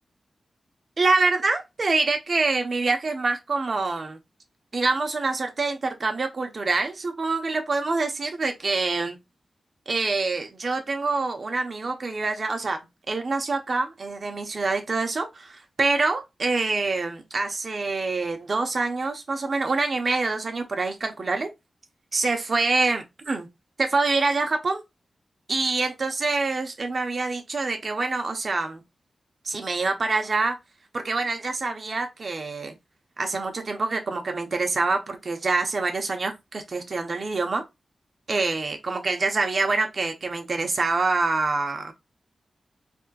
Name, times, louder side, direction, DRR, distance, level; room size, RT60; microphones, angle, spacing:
voice 1, 1.0-4.2 4.7-9.2 9.9-12.8 13.1-21.5 22.1-23.5 23.8-24.8 25.5-28.8 29.4-30.6 30.9-32.7 33.2-37.6 38.3-41.9, right 3 dB, 55° right, 1.0 m, -26 dB
4.4 x 3.6 x 2.5 m
cardioid pair, 55°, 0 cm